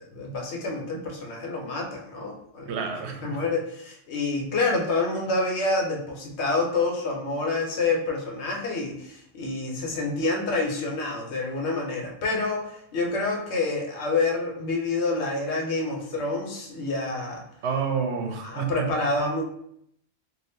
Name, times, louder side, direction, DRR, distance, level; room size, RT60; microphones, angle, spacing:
voice 1, 0.0-2.7 3.2-17.4 18.4-19.4, left 3 dB, 80° left, 0 dB, 1.0 m, -28 dB
voice 2, 2.7-3.4 17.6-18.9, right 6 dB, 80° right, 4 dB, 0.9 m, -29 dB
2.6 x 2.5 x 3.4 m, 0.71 s
omnidirectional pair, 1.1 m